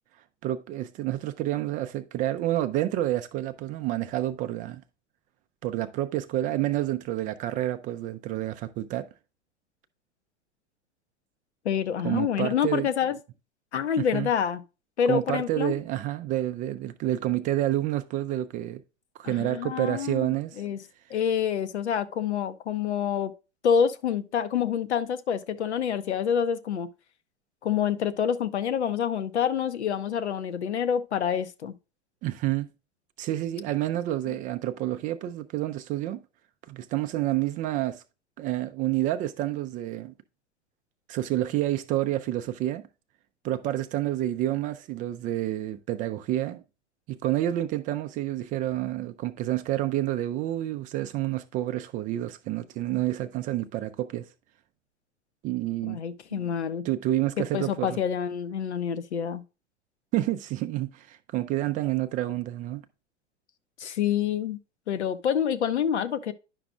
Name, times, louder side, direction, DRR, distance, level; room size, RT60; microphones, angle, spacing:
voice 1, 0.4-4.8 5.6-9.1 12.0-12.9 14.0-14.3 15.1-18.8 19.2-20.6 32.2-32.7 33.2-36.2 36.7-38.0 38.4-40.1 41.1-42.8 43.4-46.6 47.1-54.3 55.4-56.0 56.3-56.5 56.8-58.0 60.1-62.8, right 14 dB, 25° right, 0.4 m, -29 dB
voice 2, 11.6-13.2 13.7-14.6 15.0-15.7 19.2-20.8 21.1-23.3 23.6-26.9 27.6-31.7 34.3-34.4 55.8-56.8 57.4-59.4 63.8-64.6 64.9-66.3, left 8 dB, 65° left, 0.8 m, -27 dB
10.5 x 5.8 x 2.3 m
figure-of-eight pair, 85°, 36 cm